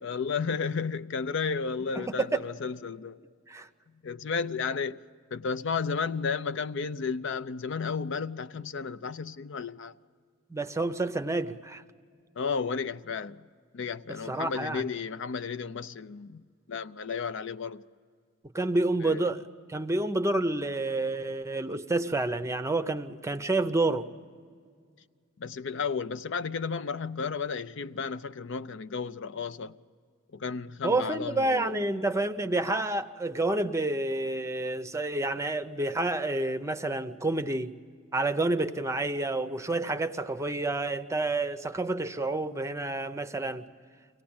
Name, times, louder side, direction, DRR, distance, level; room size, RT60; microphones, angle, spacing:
voice 1, 0.0-3.2 4.0-5.0 5.3-9.9 12.4-13.4 13.7-17.8 19.0-19.3 25.4-29.7 30.3-31.8, left 5 dB, 60° left, 0.5 m, -33 dB
voice 2, 1.9-2.4 3.5-3.7 10.5-11.8 14.3-14.8 18.5-24.1 30.8-37.8 38.1-43.6, right 2 dB, 15° right, 0.6 m, -29 dB
24.5 x 17.5 x 8.7 m
head